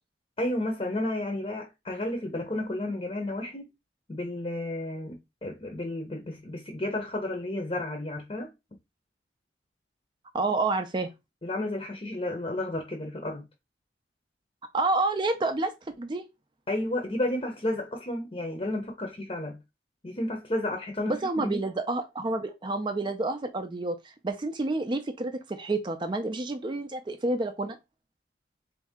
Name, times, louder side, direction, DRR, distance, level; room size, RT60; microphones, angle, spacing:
voice 1, 0.4-3.7 4.1-8.5 11.4-13.5 16.7-19.6 20.0-21.6, left 1 dB, 30° left, 0.7 m, -32 dB
voice 2, 10.3-11.1 14.7-16.2 21.1-27.8, right 2 dB, 25° right, 0.4 m, -29 dB
4.0 x 2.7 x 3.6 m
head